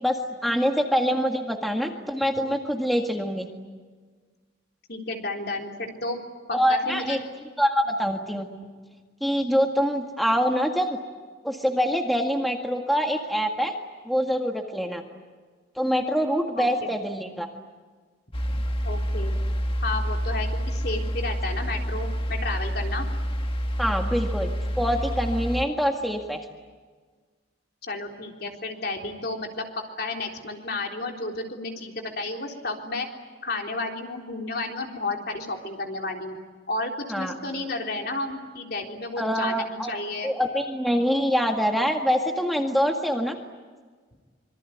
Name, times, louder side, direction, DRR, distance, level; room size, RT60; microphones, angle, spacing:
voice 1, 0.0-3.5 6.5-7.2 7.6-8.5 9.2-11.0 11.4-13.7 14.0-15.0 15.8-17.5 23.8-24.5 24.8-26.4 37.1-37.3 39.2-39.9 40.2-43.4, equal, ahead, 2 dB, 1.8 m, -25 dB
voice 2, 4.9-6.2 6.5-7.2 16.6-16.9 18.5-19.4 19.8-23.1 27.8-33.1 33.4-36.4 36.7-40.3, left 2 dB, 55° left, 2 dB, 3.8 m, -32 dB
sound 1, 18.3-25.6, equal, 30° left, 1.6 m, -28 dB
26.0 x 23.5 x 9.5 m, 1.5 s
head